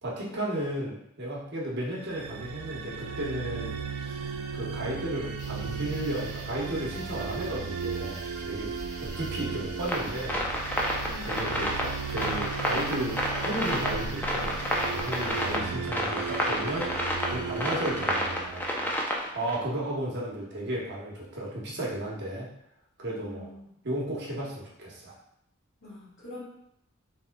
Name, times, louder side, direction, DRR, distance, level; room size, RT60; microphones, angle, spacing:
voice 1, 0.0-4.2 4.5-8.7 9.0-10.4 11.3-16.9 17.3-18.7 19.3-22.5 23.0-23.5 23.8-25.1, right 1 dB, 55° right, -4 dB, 0.9 m, -34 dB
sound 1, 2.0-19.1, right 6 dB, 85° right, 0.3 m, -36 dB
sound 2, 5.4-15.6, equal, 35° left, 1.4 m, -43 dB
sound 3, 9.8-19.6, equal, 10° left, 0.4 m, -30 dB
voice 2, 11.1-11.4 15.4-15.8 23.2-23.7 25.8-26.4, left 2 dB, 60° left, -7 dB, 1.2 m, -44 dB
3.5 x 2.9 x 2.2 m, 0.75 s
head